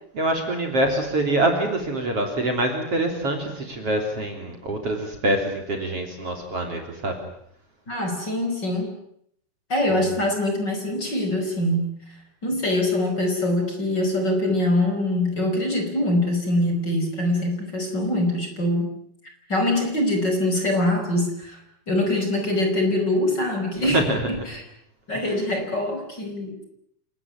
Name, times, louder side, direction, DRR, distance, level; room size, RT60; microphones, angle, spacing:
voice 1, 0.1-7.2 9.9-10.0 23.8-24.2, right 1 dB, 40° right, 3 dB, 4.1 m, -25 dB
voice 2, 7.9-8.9 9.7-12.0 12.4-18.9 19.5-21.6 21.9-24.6 25.1-26.6, left 1 dB, 25° left, 4 dB, 5.6 m, -23 dB
28.5 x 18.5 x 9.8 m, 0.70 s
omnidirectional pair, 4.5 m